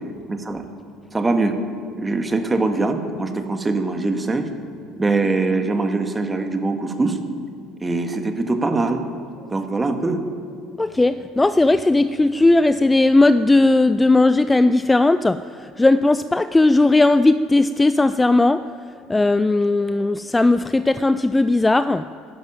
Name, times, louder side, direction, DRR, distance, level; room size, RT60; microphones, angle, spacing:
voice 1, 0.3-0.6 1.1-1.6 1.9-4.5 5.0-7.2 7.8-9.0 9.5-10.2, right 3 dB, 20° right, 6 dB, 1.8 m, -22 dB
voice 2, 10.8-18.6 19.1-22.0, left 2 dB, 15° left, 13 dB, 0.4 m, -17 dB
12.5 x 11.5 x 9.0 m, 2.4 s
figure-of-eight pair, 60°, 0 cm